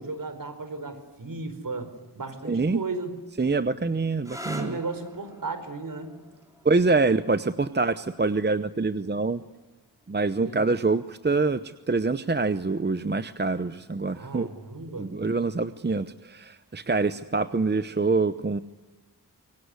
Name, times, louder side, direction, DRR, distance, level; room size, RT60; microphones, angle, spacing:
voice 1, 0.0-3.1 3.6-3.8 4.5-6.1 10.4-10.7 14.1-15.1, right 3 dB, 55° right, 9 dB, 4.7 m, -35 dB
voice 2, 2.4-2.8 3.4-4.8 6.6-9.4 10.1-14.5 15.0-18.6, right 3 dB, 25° right, 12 dB, 0.8 m, -25 dB
sound 1, 4.2-11.6 12.6-13.1 16.7-17.0, equal, 10° right, 3.7 m, -46 dB
26.0 x 23.5 x 9.6 m, 1.1 s
wide cardioid pair, 125°, 39 cm